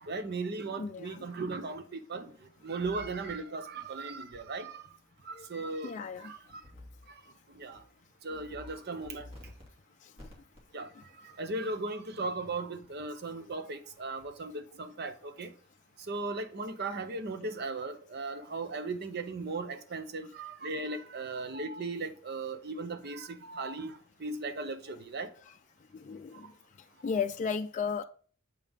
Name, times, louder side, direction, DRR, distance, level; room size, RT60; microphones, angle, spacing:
voice 1, 0.0-2.3 2.6-4.9 5.2-6.6 7.1-7.2 7.5-7.8 8.2-9.3 10.7-10.9 11.2-15.5 16.1-25.3, right 3 dB, 55° right, 0.8 m, -37 dB
voice 2, 0.8-1.2 5.4-5.5 5.8-6.3 26.1-26.5 27.0-28.0, left 6 dB, 40° left, 0.3 m, -34 dB
sound 1, 2.8-3.3 4.3-4.4 6.6-7.1 7.5-7.8 8.3-8.7 9.0-9.7 10.2-10.6, left 1 dB, 30° right, 2.4 m, -50 dB
7.4 x 5.3 x 3.6 m
head